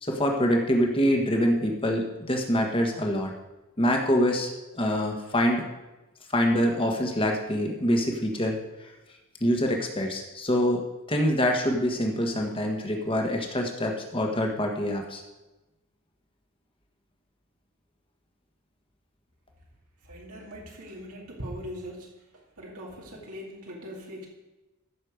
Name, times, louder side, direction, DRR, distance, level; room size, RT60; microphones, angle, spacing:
voice 1, 0.0-3.3 3.8-5.7 6.3-8.6 9.4-10.8 11.1-15.2, equal, 25° left, 2 dB, 1.5 m, -25 dB
voice 2, 20.0-22.2 22.6-24.3, equal, 85° right, -2 dB, 2.3 m, -40 dB
14.5 x 6.5 x 5.1 m, 1.0 s
head